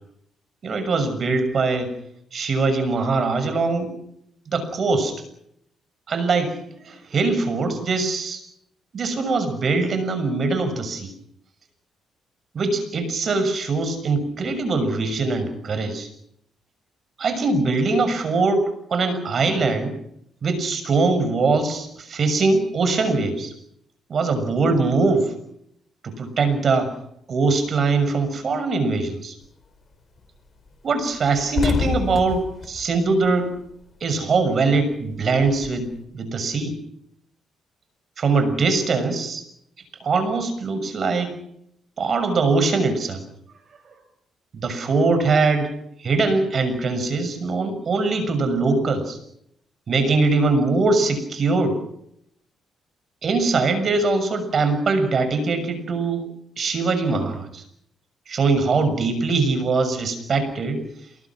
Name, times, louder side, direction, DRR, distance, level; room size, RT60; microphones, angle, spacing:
voice 1, 0.6-1.9 2.3-3.9 4.5-5.2 6.1-6.6 6.8-8.4 8.9-11.1 12.5-16.1 17.2-19.9 20.4-23.5 24.1-25.3 26.0-26.9 27.3-29.4 30.8-33.6 34.0-36.8 38.2-39.5 40.0-41.4 42.0-43.2 44.5-45.7 46.0-49.2 49.9-51.8 53.2-56.3 56.6-57.6 58.3-60.8, right 3 dB, 50° right, 10 dB, 6.5 m, -22 dB
sound 1, 29.4-29.8 30.2-30.3 30.6-30.7 31.0-34.0 34.3-36.0, left 5 dB, 45° left, 4.2 m, -29 dB
28.5 x 21.0 x 6.2 m, 0.73 s
cardioid pair, 90°, 0 cm